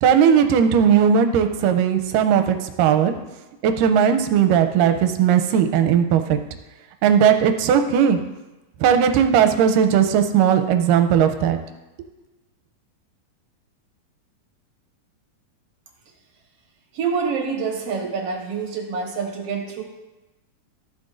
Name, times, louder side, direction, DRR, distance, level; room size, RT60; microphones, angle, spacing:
voice 1, 0.0-3.1 3.6-6.4 7.0-8.2 8.8-11.6, right 8 dB, 80° right, 7 dB, 2.1 m, -17 dB
voice 2, 16.9-19.8, right 5 dB, 55° right, 0 dB, 1.9 m, -26 dB
14.0 x 7.7 x 2.6 m, 1.0 s
omnidirectional pair, 4.0 m